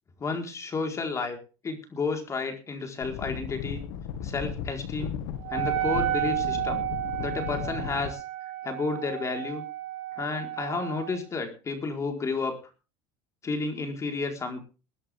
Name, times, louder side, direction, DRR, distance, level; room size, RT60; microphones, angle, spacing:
voice 1, 0.2-1.4 1.6-3.8 4.2-5.1 5.5-6.8 7.2-8.2 8.6-9.6 10.2-12.5 13.4-14.6, left 4 dB, 25° left, 4 dB, 4.3 m, -31 dB
sound 1, 3.0-8.1, left 8 dB, 85° left, 1.9 m, -35 dB
Wind instrument woodwind instrument, 5.4-11.2, right 14 dB, 75° right, 4.6 m, -32 dB
21.5 x 11.0 x 3.6 m, 0.34 s
supercardioid pair, 115°, 11 cm